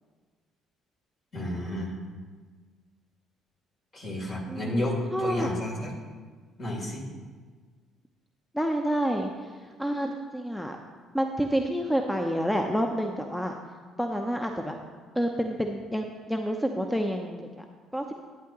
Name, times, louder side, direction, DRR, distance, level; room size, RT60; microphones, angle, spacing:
voice 1, 1.3-1.9 3.9-5.9 6.6-7.0, left 1 dB, 45° left, -2 dB, 3.4 m, -31 dB
voice 2, 4.5-5.5 8.5-9.5 9.8-10.8 11.1-13.6 14.0-14.7 15.1-17.5 17.9-18.0, equal, 5° left, 4 dB, 0.8 m, -28 dB
11.5 x 9.7 x 3.1 m, 1.5 s
figure-of-eight pair, 50°, 0 cm